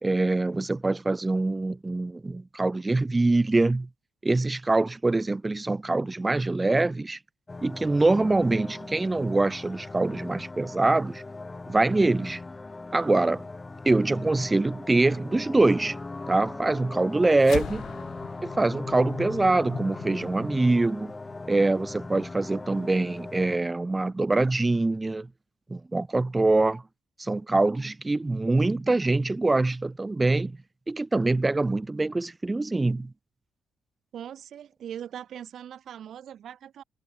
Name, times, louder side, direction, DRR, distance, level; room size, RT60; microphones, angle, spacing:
voice 1, 0.0-3.9 4.2-7.2 7.6-11.2 11.7-12.4 12.9-13.4 13.8-16.0 16.3-17.8 18.4-21.1 21.5-25.3 25.7-26.8 27.2-30.6 30.9-33.1, right 2 dB, 20° right, 0.9 m, -24 dB
sound 1, 7.5-23.6, left 3 dB, 20° left, 0.7 m, -40 dB
sound 2, 17.4-22.0, left 10 dB, 70° left, 2.4 m, -40 dB
voice 2, 34.1-36.8, right 9 dB, 65° right, 1.0 m, -40 dB
cardioid pair, 90°, 0 cm